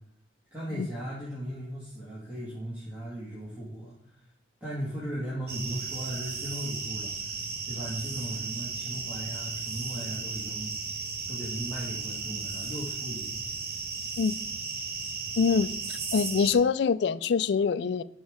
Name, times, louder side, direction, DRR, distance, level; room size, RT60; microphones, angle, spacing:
voice 1, 0.5-4.3 4.6-7.4 7.6-10.7 11.3-13.4, right 1 dB, 10° right, 1.8 m, -37 dB
sound 1, 5.5-16.5, right 4 dB, 55° right, 1.1 m, -35 dB
voice 2, 15.4-18.0, left 5 dB, 60° left, 0.3 m, -25 dB
10.5 x 5.3 x 3.6 m
head